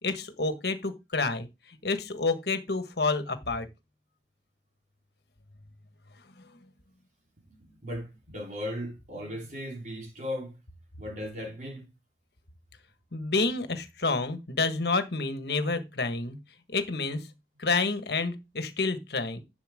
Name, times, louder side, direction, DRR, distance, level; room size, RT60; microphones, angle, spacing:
voice 1, 0.0-3.7 13.1-16.4 16.7-17.3 17.6-19.4, left 3 dB, 65° left, 1.5 m, -29 dB
voice 2, 7.6-10.6 11.0-11.9, left 1 dB, 45° right, 4.0 m, -37 dB
11.5 x 7.0 x 3.6 m
head